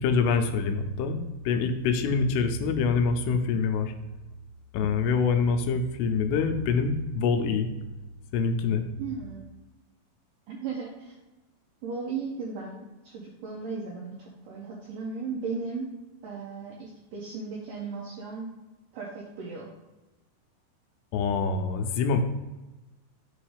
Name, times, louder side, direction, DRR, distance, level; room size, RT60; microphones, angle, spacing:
voice 1, 0.0-1.2 1.5-3.9 4.7-7.7 8.3-8.8 21.1-22.2, left 5 dB, 85° left, 7 dB, 2.7 m, -25 dB
voice 2, 9.0-9.4 10.5-11.2 11.8-15.9 16.2-18.5 18.9-19.7, right 4 dB, 80° right, -3 dB, 1.9 m, -36 dB
6.5 x 3.1 x 4.9 m, 1.1 s
omnidirectional pair, 4.8 m